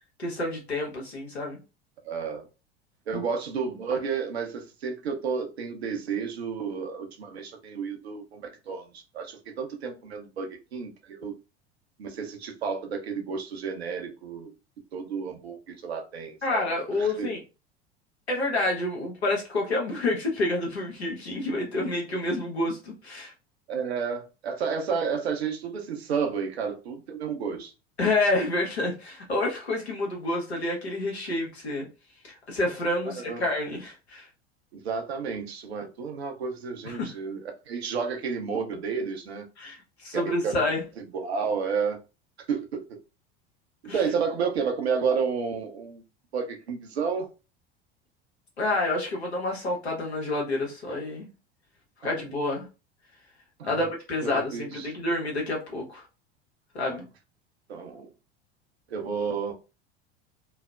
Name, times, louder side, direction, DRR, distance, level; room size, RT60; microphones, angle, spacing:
voice 1, 0.2-1.6 3.1-3.2 16.4-17.4 18.3-23.3 28.0-31.9 32.2-34.3 36.8-37.1 39.6-40.8 43.9-44.0 48.6-51.3 52.0-52.7 53.6-56.0 56.7-57.0, left 2 dB, 85° left, 1.1 m, -28 dB
voice 2, 2.0-2.5 3.1-11.3 12.0-14.5 14.9-16.6 17.0-17.3 23.7-27.7 33.1-33.4 34.7-39.5 40.1-40.6 41.0-42.0 42.5-43.0 43.9-46.0 46.3-47.3 52.0-52.1 53.6-53.8 54.2-55.0 56.9-57.0 57.7-58.1 58.9-59.5, right 6 dB, 80° right, 0.7 m, -31 dB
3.1 x 2.0 x 2.4 m
figure-of-eight pair, 75°, 31 cm